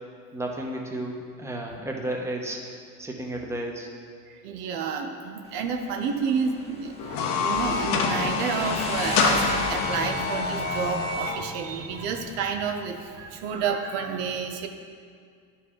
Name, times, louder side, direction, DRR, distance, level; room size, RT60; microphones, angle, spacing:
voice 1, 0.3-2.6 3.0-3.9, right 1 dB, 10° right, 0 dB, 0.9 m, -32 dB
voice 2, 4.3-14.7, right 6 dB, 80° right, 5 dB, 0.8 m, -30 dB
Motorcycle, 5.4-13.7, left 2 dB, 20° left, 1.0 m, -37 dB
sound 1, 7.0-11.4, left 4 dB, 80° left, 0.9 m, -26 dB
11.0 x 4.2 x 3.7 m, 2.2 s
supercardioid pair, 105°, 34 cm